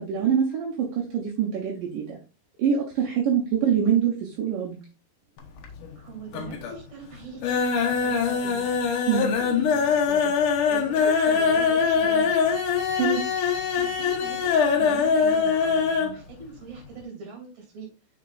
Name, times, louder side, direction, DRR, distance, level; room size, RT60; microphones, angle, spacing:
voice 1, 0.0-2.2 2.6-4.8 9.1-9.3 12.9-13.2, right 8 dB, 65° right, -2 dB, 2.3 m, -25 dB
sound 1, 5.4-6.0 6.3-6.8 7.1-16.2 16.4-16.5 16.8-16.9, left 6 dB, 70° left, 2.0 m, -23 dB
voice 2, 6.0-8.7 9.2-10.4 10.7-12.6 13.8-17.9, right 4 dB, 40° right, 0 dB, 3.6 m, -41 dB
6.6 x 6.3 x 2.6 m, 0.32 s
omnidirectional pair, 5.1 m